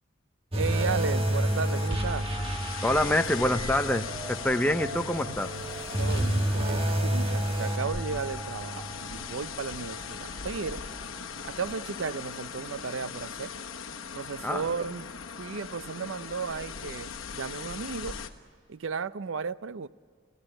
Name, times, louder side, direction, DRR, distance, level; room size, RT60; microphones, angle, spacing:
sound 1, 0.5-12.0 12.3-12.5 13.2-13.3, right 1 dB, 30° right, 1.3 m, -31 dB
voice 1, 0.5-2.3 6.0-10.8 11.4-13.5 14.1-15.1 15.4-18.2 18.7-19.9, right 5 dB, 70° right, 0.5 m, -34 dB
sound 2, 0.6-18.3, left 6 dB, 75° left, 1.2 m, -40 dB
voice 2, 2.8-5.5 14.4-14.6, left 1 dB, 10° left, 0.6 m, -26 dB
30.0 x 14.5 x 9.0 m
head